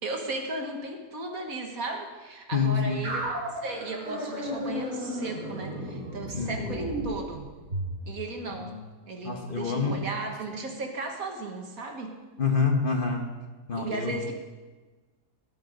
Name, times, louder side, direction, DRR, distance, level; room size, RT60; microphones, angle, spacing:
voice 1, 0.0-7.4 8.1-8.7 9.1-12.2 13.8-14.3, right 3 dB, 60° right, 3 dB, 1.9 m, -36 dB
voice 2, 2.5-3.1 6.3-6.6 8.6-8.8 9.2-10.1 12.4-13.4 13.7-14.1, left 5 dB, 40° left, 2 dB, 1.1 m, -27 dB
sound 1, 3.0-8.0, equal, 80° right, 5.2 m, -34 dB
19.5 x 7.9 x 5.3 m, 1.3 s
omnidirectional pair, 1.7 m